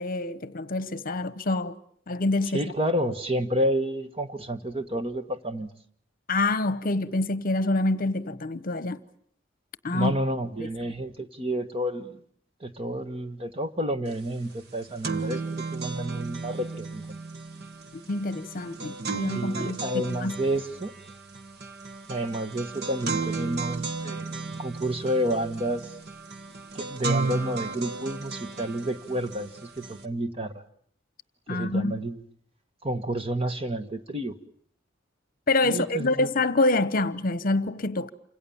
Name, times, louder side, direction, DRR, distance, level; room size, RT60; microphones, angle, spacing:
voice 1, 0.0-1.8 2.1-2.6 6.3-9.0 9.8-10.1 10.6-10.7 18.1-20.3 31.5-32.0 35.5-38.1, left 2 dB, 45° left, 1.1 m, -26 dB
voice 2, 2.5-5.7 9.9-12.2 12.6-17.1 19.3-20.9 22.1-25.9 26.7-30.6 31.5-32.2 32.8-34.4 35.6-36.3, right 1 dB, 30° right, 1.4 m, -30 dB
sound 1, 14.1-14.2 14.5-30.1, right 4 dB, 55° right, 1.6 m, -34 dB
28.5 x 26.5 x 7.2 m
head